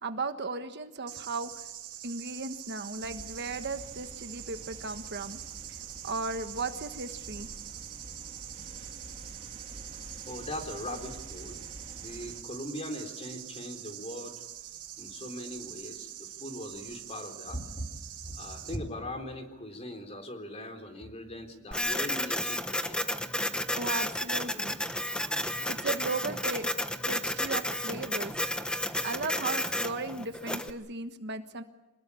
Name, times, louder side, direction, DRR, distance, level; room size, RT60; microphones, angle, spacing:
voice 1, 0.0-1.6 2.0-5.4 6.0-7.5 23.8-24.8 25.7-26.7 27.0-28.3 29.0-31.6, right 3 dB, 50° right, 8 dB, 1.3 m, -36 dB
sound 1, 1.1-18.8, right 12 dB, 85° right, 2.4 m, -44 dB
sound 2, 3.0-12.4, right 1 dB, 30° right, 2.3 m, -49 dB
voice 2, 10.3-11.6 12.0-14.4 15.0-17.9 18.2-23.0 28.9-29.1, left 1 dB, 30° left, 6 dB, 3.9 m, -40 dB
Printer, 21.7-30.7, left 1 dB, 5° left, 1.1 m, -32 dB
26.5 x 20.0 x 8.6 m, 1.0 s
head